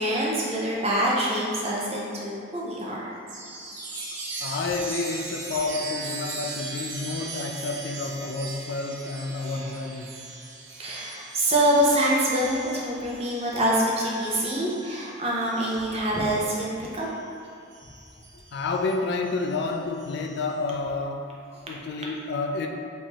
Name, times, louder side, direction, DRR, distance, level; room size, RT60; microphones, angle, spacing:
voice 1, 0.0-3.1 9.4-9.7 10.7-17.1, right 1 dB, 30° right, -5 dB, 0.6 m, -25 dB
Chime, 3.3-17.3 17.7-20.5, right 3 dB, 75° right, 0.7 m, -39 dB
voice 2, 4.4-10.1 18.3-22.7, left 3 dB, 60° left, 3 dB, 0.3 m, -30 dB
4.4 x 2.7 x 2.9 m, 2.5 s
head